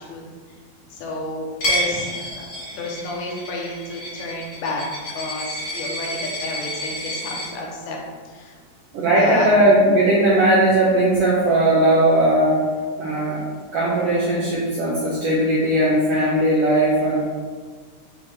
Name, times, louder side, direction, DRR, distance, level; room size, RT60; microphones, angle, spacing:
voice 1, 0.9-4.8 5.1-8.0 8.3-8.6 9.2-9.5, left 2 dB, 80° left, -1 dB, 2.0 m, -31 dB
Coin (dropping), 1.6-7.5, equal, 60° left, 1.0 m, -29 dB
voice 2, 8.9-12.7 13.0-13.4 13.7-17.2, right 1 dB, 75° right, -5 dB, 1.4 m, -18 dB
6.2 x 2.1 x 3.3 m, 1.5 s
omnidirectional pair, 3.4 m